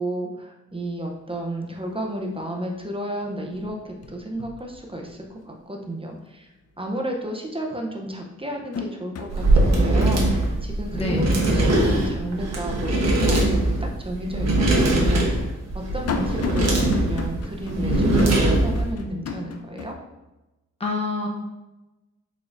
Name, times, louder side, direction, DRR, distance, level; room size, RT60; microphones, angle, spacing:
voice 1, 0.0-6.5 6.8-15.5 15.7-19.9, right 1 dB, 20° right, 1 dB, 0.6 m, -32 dB
sound 1, 0.8-0.9 1.3-1.8 2.2-3.0 3.2-5.5 5.9-6.0 7.4-7.5 8.1-13.2 13.6-13.7 14.6-19.9, left 5 dB, 55° left, 0.5 m, -36 dB
sound 2, 9.3-18.9, right 1 dB, 60° right, 1.1 m, -21 dB
voice 2, 10.9-11.4 20.8-21.3, left 2 dB, 20° left, -2 dB, 0.8 m, -26 dB
5.0 x 3.8 x 2.5 m, 1.0 s
wide cardioid pair, 105°, 30 cm